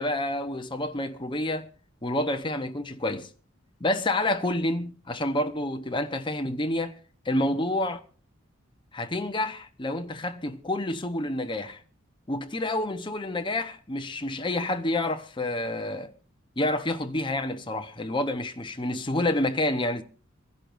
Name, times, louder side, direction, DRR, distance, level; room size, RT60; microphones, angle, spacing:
voice 1, 0.0-1.7 2.0-3.3 3.8-7.0 7.2-8.0 8.9-11.8 12.3-16.1 16.6-20.0, left 1 dB, 25° left, 1.0 m, -28 dB
26.0 x 11.0 x 2.6 m
head